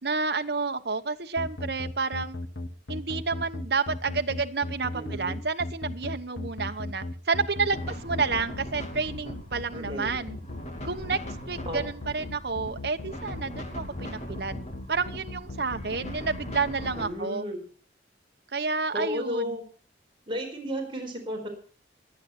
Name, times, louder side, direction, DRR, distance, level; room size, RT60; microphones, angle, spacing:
voice 1, 0.0-2.4 2.9-10.4 10.8-11.2 11.5-14.6 14.9-17.4 18.5-19.5, right 4 dB, 65° right, 8 dB, 1.0 m, -30 dB
sound 1, 1.4-16.9, left 2 dB, 75° left, 1.3 m, -37 dB
voice 2, 4.9-5.4 9.7-10.1 11.7-11.8 16.9-17.6 18.9-19.6 20.3-21.5, equal, 30° right, 1 dB, 4.4 m, -33 dB
sound 2, 7.7-17.1, equal, 40° left, 2.7 m, -40 dB
23.0 x 9.1 x 4.3 m, 0.42 s
head